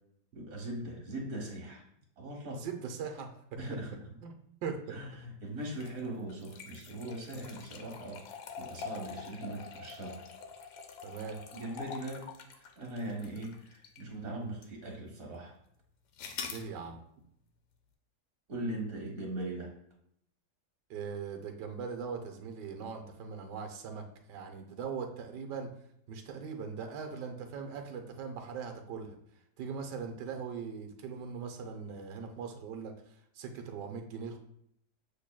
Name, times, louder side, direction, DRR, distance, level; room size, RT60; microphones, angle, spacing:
voice 1, 0.3-1.8 2.2-2.6 3.6-4.0 4.9-8.3 8.6-10.3 11.5-15.5 18.5-19.7, right 1 dB, 55° right, -1 dB, 1.6 m, -40 dB
voice 2, 2.6-3.6 4.2-4.4 4.6-5.0 7.3-7.5 11.0-11.4 14.3-14.5 16.5-17.0 20.9-25.7 26.1-29.2 29.6-34.4, right 6 dB, 85° right, 5 dB, 1.3 m, -40 dB
sound 1, 5.7-14.1 14.6-14.7 16.2-16.7, left 6 dB, 75° left, 1.2 m, -45 dB
8.0 x 3.0 x 2.2 m, 0.72 s
omnidirectional pair, 1.8 m